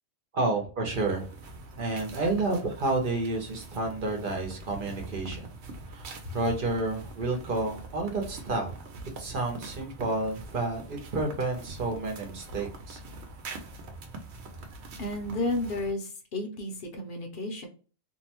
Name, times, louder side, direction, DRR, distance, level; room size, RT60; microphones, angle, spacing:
voice 1, 0.3-1.2 1.8-5.5 5.9-6.1 6.3-8.7 9.2-13.0, right 2 dB, 55° right, 2 dB, 0.9 m, -30 dB
sound 1, 0.9-15.9, right 3 dB, 90° right, 0.9 m, -44 dB
voice 2, 15.0-17.7, left 2 dB, 65° left, 3 dB, 0.9 m, -32 dB
2.7 x 2.1 x 2.8 m, 0.38 s
omnidirectional pair, 1.1 m